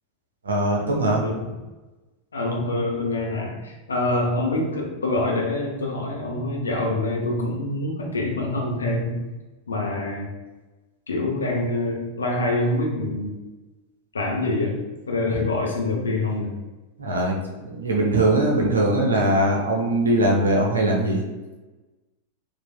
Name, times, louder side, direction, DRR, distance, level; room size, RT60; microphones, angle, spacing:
voice 1, 0.4-1.2 15.3-15.5 17.0-21.2, right 1 dB, 70° right, 0 dB, 0.7 m, -21 dB
voice 2, 1.2-1.5 2.3-9.2 9.7-10.3 11.1-13.3 14.1-14.8 15.1-16.6, left 2 dB, 75° left, -1 dB, 0.8 m, -25 dB
4.1 x 2.6 x 2.3 m, 1.2 s
figure-of-eight pair, 90°, 0 cm